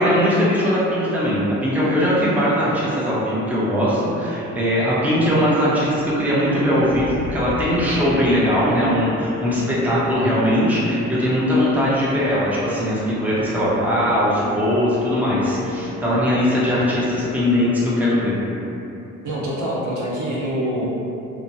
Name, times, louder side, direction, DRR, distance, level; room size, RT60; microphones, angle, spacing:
voice 1, 0.0-18.4, equal, 5° right, -9 dB, 0.7 m, -20 dB
sound 1, 5.6-17.3, left 1 dB, 30° right, 1.2 m, -36 dB
voice 2, 19.2-20.9, right 1 dB, 70° right, -6 dB, 0.7 m, -25 dB
2.8 x 2.2 x 2.6 m, 2.8 s
cardioid pair, 90°, 30 cm